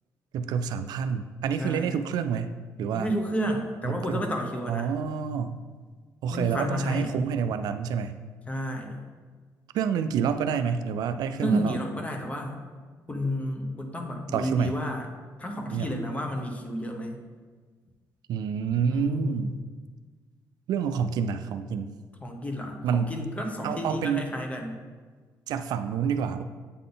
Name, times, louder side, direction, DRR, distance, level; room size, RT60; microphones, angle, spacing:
voice 1, 0.3-3.1 3.8-4.2 4.7-5.6 6.2-8.2 9.7-11.8 14.3-14.8 15.7-16.0 18.3-19.6 20.7-21.9 22.8-23.1 23.6-24.2 25.5-26.4, right 7 dB, 80° right, 9 dB, 0.3 m, -28 dB
voice 2, 1.6-1.9 2.9-4.9 6.3-7.1 8.5-9.0 11.4-12.6 13.1-15.1 15.4-17.2 18.9-19.5 22.2-24.8, equal, 20° left, 2 dB, 0.9 m, -31 dB
8.2 x 3.8 x 3.9 m, 1.5 s
cardioid pair, 130°, 7 cm